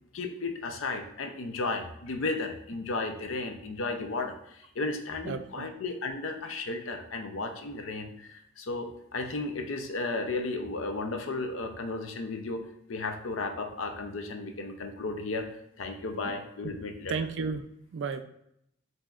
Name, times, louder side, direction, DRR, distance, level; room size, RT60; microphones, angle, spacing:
voice 1, 0.1-12.6 12.9-15.5 15.8-17.1, left 3 dB, 80° left, 5 dB, 0.6 m, -34 dB
voice 2, 5.2-5.7 17.1-18.2, right 5 dB, 65° right, 9 dB, 0.3 m, -33 dB
7.4 x 2.7 x 2.4 m, 0.75 s
head